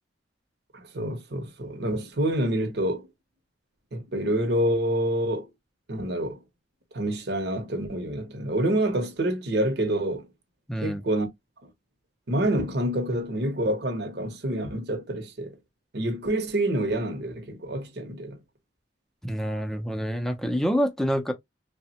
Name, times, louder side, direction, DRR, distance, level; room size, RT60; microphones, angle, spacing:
voice 1, 0.7-3.1 3.9-5.5 5.9-6.4 6.9-10.3 10.8-11.3 12.3-15.6 15.9-18.4, right 1 dB, 60° right, 0.8 m, -27 dB
voice 2, 10.7-11.0 19.2-21.3, equal, ahead, 0.5 m, -27 dB
3.2 x 2.1 x 2.7 m
head